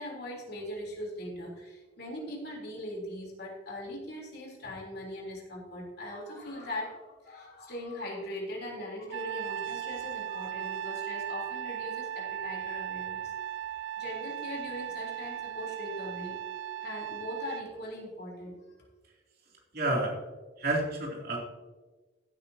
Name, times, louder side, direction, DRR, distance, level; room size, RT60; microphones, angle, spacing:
voice 1, 0.0-13.4 14.0-16.4 16.8-18.6, left 1 dB, 55° left, -3 dB, 3.6 m, -40 dB
Trumpet, 9.1-17.7, right 11 dB, 80° right, 0.4 m, -37 dB
voice 2, 19.7-20.1 20.6-21.4, right 2 dB, 55° right, -2 dB, 3.0 m, -29 dB
15.5 x 8.7 x 2.8 m, 1.2 s
head